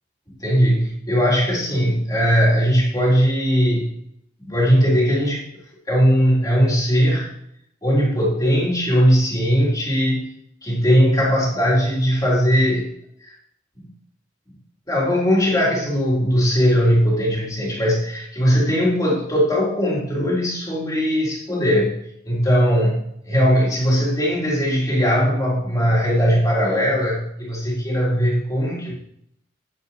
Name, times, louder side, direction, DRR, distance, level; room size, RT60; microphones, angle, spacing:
voice 1, 0.4-3.9 4.5-5.5 5.9-7.3 7.8-10.3 10.6-12.9 13.2-13.3 14.9-22.0 22.3-28.9, equal, 20° left, -5 dB, 3.7 m, -19 dB
9.7 x 9.6 x 3.2 m, 0.72 s
head